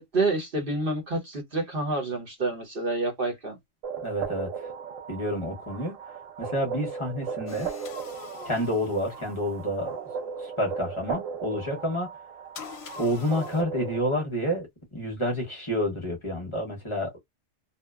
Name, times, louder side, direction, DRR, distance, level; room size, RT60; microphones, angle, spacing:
voice 1, 0.0-3.6, right 2 dB, 50° right, 1.0 m, -28 dB
sound 1, 3.8-14.2, right 6 dB, 85° right, 1.0 m, -37 dB
voice 2, 4.0-4.7 5.1-7.7 8.4-10.0 10.4-12.2 12.9-17.2, equal, 30° left, 0.7 m, -29 dB
sound 2, 7.5-9.9 12.5-13.6, left 6 dB, 65° left, 0.8 m, -44 dB
2.7 x 2.1 x 2.2 m
omnidirectional pair, 1.3 m